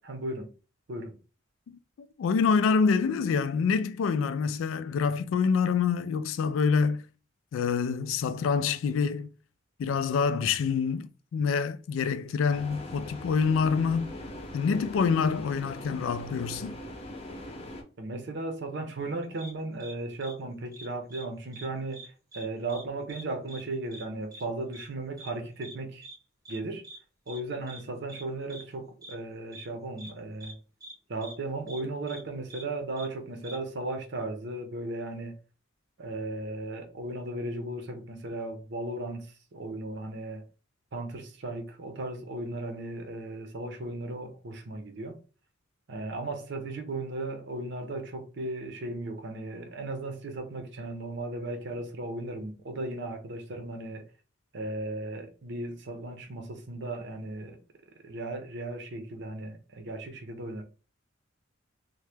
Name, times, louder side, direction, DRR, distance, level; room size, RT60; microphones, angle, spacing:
voice 1, 0.0-0.5 0.9-1.2 14.7-14.8 18.0-26.1 26.5-26.8 27.3-30.6 31.1-35.4 36.0-40.4 40.9-45.2 45.9-54.0 54.5-57.6 58.0-60.6, right 2 dB, 60° right, 0.6 m, -36 dB
voice 2, 1.7-7.0 7.5-9.3 9.8-14.1 14.5-16.8, left 5 dB, 85° left, 0.3 m, -26 dB
sound 1, 12.5-17.8, left 1 dB, 30° left, 0.5 m, -41 dB
sound 2, 19.4-19.5 19.8-19.9 20.2-20.3 20.7-21.3 21.5-21.7 21.9-22.4 22.7-22.8 23.1-23.2 23.5-23.6 23.9-24.0 24.3-24.4 24.7-24.9 25.2-25.3 25.6-25.8 26.0-26.2 26.5-26.6 26.8-27.0 27.3-27.4 27.7-27.8 28.1-28.2 28.5-28.6 29.0-29.1 29.5-29.7 30.0-30.1 30.4-30.5 30.8-30.9 31.2-31.3 31.7-31.8 32.1-32.2 32.5-32.6 33.0-33.1 33.4-33.6, right 1 dB, 20° right, 0.7 m, -45 dB
2.8 x 2.1 x 3.3 m
head